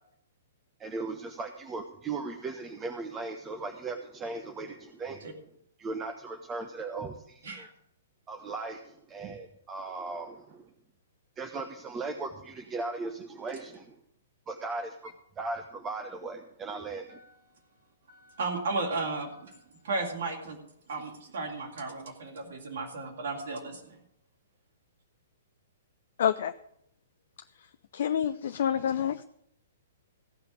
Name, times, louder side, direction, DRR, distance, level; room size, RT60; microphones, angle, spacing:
voice 1, 0.8-5.3 5.8-7.7 8.3-10.7 11.4-14.0 14.5-17.2, right 3 dB, 20° right, 5 dB, 1.0 m, -38 dB
voice 2, 18.1-20.6 20.9-24.0, right 3 dB, 60° right, 0 dB, 3.0 m, -35 dB
voice 3, 26.2-26.5 27.9-29.2, left 9 dB, 55° left, 10 dB, 0.5 m, -27 dB
15.5 x 5.7 x 8.2 m, 0.73 s
figure-of-eight pair, 115°, 0 cm